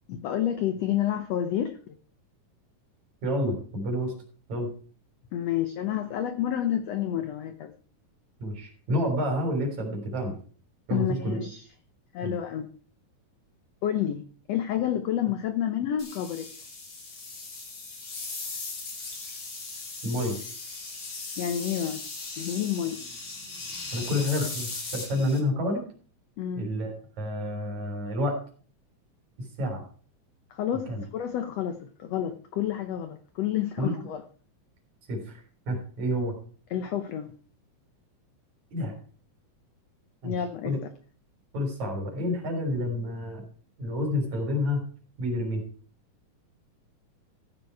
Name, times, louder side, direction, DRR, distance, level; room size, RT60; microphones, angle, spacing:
voice 1, 0.1-2.0 5.3-7.7 10.9-11.6 12.1-12.7 13.8-14.2 14.5-16.5 21.4-22.0 22.4-23.0 26.4-26.6 30.5-34.2 36.7-37.3 40.2-40.8, left 10 dB, 80° left, 1.4 m, -29 dB
voice 2, 3.2-4.1 4.5-4.7 8.4-10.3 10.9-11.4 12.2-12.3 20.0-20.4 23.9-25.8 26.5-28.4 29.6-29.8 30.9-31.0 33.8-34.0 35.1-36.3 38.7-38.9 40.2-40.3 40.6-40.8 41.5-43.4 43.8-44.8 45.2-45.6, left 1 dB, 55° right, 4.9 m, -29 dB
sound 1, 16.0-25.4, left 3 dB, 50° left, 4.1 m, -38 dB
15.0 x 7.0 x 4.7 m
omnidirectional pair, 4.0 m